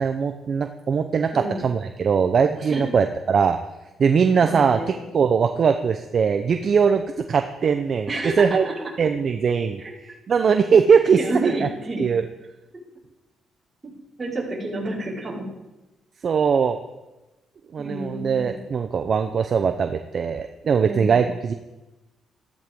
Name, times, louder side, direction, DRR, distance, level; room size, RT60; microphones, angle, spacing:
voice 1, 0.0-3.6 4.0-4.8 5.1-8.1 8.4-8.6 9.0-11.7 12.0-12.2 16.2-16.8 17.7-21.5, right 6 dB, 50° right, 7 dB, 0.7 m, -21 dB
voice 2, 1.3-1.7 2.7-2.8 4.4-5.0 8.1-8.9 9.8-9.9 11.2-12.1 14.2-15.5 17.8-18.6 20.8-21.3, right 2 dB, 30° right, -6 dB, 5.1 m, -29 dB
14.0 x 13.5 x 3.8 m, 1.0 s
cardioid pair, 90°, 0 cm